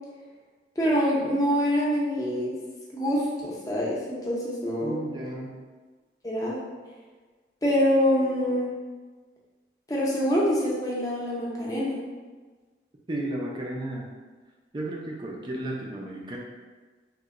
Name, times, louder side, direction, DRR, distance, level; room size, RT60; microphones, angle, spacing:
voice 1, 0.8-2.5 2.9-5.0 6.2-6.6 7.6-8.7 9.9-12.0, equal, 20° left, -5 dB, 0.6 m, -25 dB
voice 2, 4.8-5.6 13.1-14.1 14.7-16.4, right 1 dB, 25° right, -1 dB, 0.4 m, -33 dB
2.9 x 2.1 x 3.6 m, 1.4 s
head